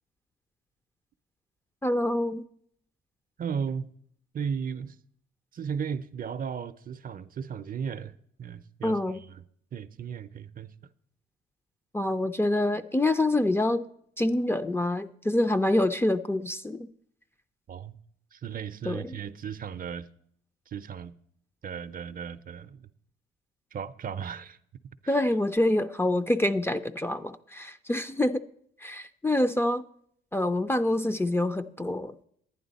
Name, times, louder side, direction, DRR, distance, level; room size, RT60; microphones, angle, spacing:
voice 1, 1.8-2.4 8.8-9.2 11.9-13.8 14.2-16.9 18.8-19.2 25.1-28.4 28.8-29.8 30.3-32.2, left 1 dB, 10° left, 0.4 m, -26 dB
voice 2, 3.4-3.9 4.3-5.0 5.5-9.0 9.3-9.4 9.7-10.7 17.7-18.0 18.3-20.1 20.7-21.1 21.6-22.9 23.7-24.6 25.0-25.2, right 7 dB, 45° right, 0.5 m, -35 dB
11.0 x 9.6 x 4.0 m
cardioid pair, 90°, 20 cm